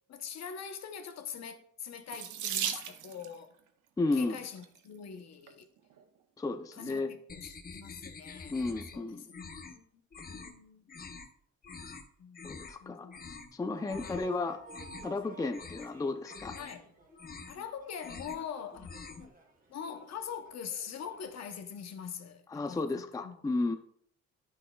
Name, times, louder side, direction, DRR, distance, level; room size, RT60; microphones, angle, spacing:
voice 1, 0.1-3.5 4.1-5.7 6.7-8.6 8.9-9.9 10.3-10.9 12.2-13.3 13.9-14.3 16.5-16.9 17.5-19.0 19.7-23.4, left 7 dB, 60° left, 0.9 m, -43 dB
Water tap faucet / Sink (filling or washing), 2.1-3.4 4.4-4.8 5.5-5.6 5.9-6.0, right 9 dB, 75° right, 0.7 m, -36 dB
voice 2, 4.0-4.4 6.4-7.1 8.5-9.3 12.4-13.1 13.5-14.6 15.0-16.5 22.5-23.8, left 3 dB, 10° left, 0.4 m, -33 dB
sound 1, 7.3-9.0 9.3-9.8 10.1-10.5 10.9-11.3 11.6-12.0 12.3-12.8 13.1-13.5 13.9-14.3 14.6-15.2 15.5-15.9 16.2-16.8 17.1-17.6 17.9-18.4 18.7-19.3, left 4 dB, 30° left, 0.8 m, -46 dB
sound 2, 13.7-21.6, right 4 dB, 30° right, 1.3 m, -55 dB
9.8 x 6.1 x 2.3 m
cardioid pair, 90°, 30 cm